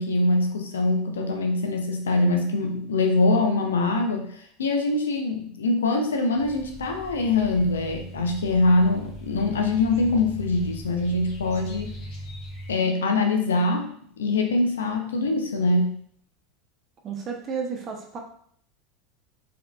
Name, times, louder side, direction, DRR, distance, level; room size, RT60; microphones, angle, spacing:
voice 1, 0.0-4.3 4.6-11.9 12.7-13.9 14.2-16.0, left 2 dB, 70° left, 3 dB, 0.6 m, -23 dB
sound 1, 6.3-12.7, equal, 45° left, 1.3 m, -40 dB
voice 2, 17.0-18.2, right 6 dB, 35° right, 3 dB, 0.9 m, -32 dB
4.6 x 3.6 x 2.5 m, 0.62 s
figure-of-eight pair, 75°, 0 cm